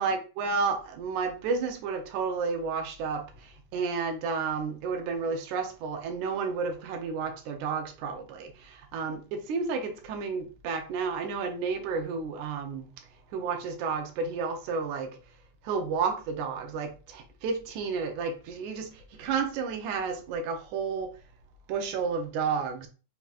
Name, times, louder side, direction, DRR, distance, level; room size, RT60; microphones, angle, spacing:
voice 1, 0.0-12.9 13.3-15.2 15.6-21.2 21.7-22.9, right 5 dB, 80° right, 2.3 m, -31 dB
5.7 x 3.5 x 2.4 m
omnidirectional pair, 3.4 m